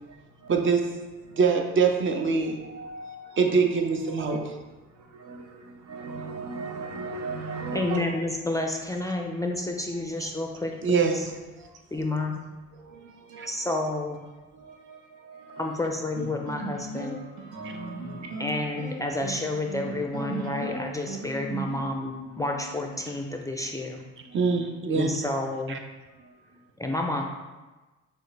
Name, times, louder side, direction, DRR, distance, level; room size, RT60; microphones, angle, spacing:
voice 1, 0.5-0.9 1.4-2.6 3.4-4.5 10.2-10.3 10.8-11.2 13.4-13.5 17.6-17.7 24.3-25.1 25.7-25.8, right 5 dB, 40° right, 4 dB, 0.6 m, -24 dB
voice 2, 2.5-3.6 4.1-4.4 5.1-8.0 12.9-13.8 14.5-16.0 16.4-16.5 17.1-18.7 24.3-24.6, right 3 dB, 75° right, 2 dB, 0.7 m, -39 dB
voice 3, 7.7-11.3 11.9-12.4 13.5-14.3 15.6-17.2 18.4-24.0 24.9-25.8 26.8-27.2, left 2 dB, 10° left, 2 dB, 0.4 m, -30 dB
sound 1, 16.2-23.1, right 1 dB, 60° right, 1.2 m, -37 dB
6.2 x 2.5 x 3.2 m, 1.2 s
cardioid pair, 90°, 30 cm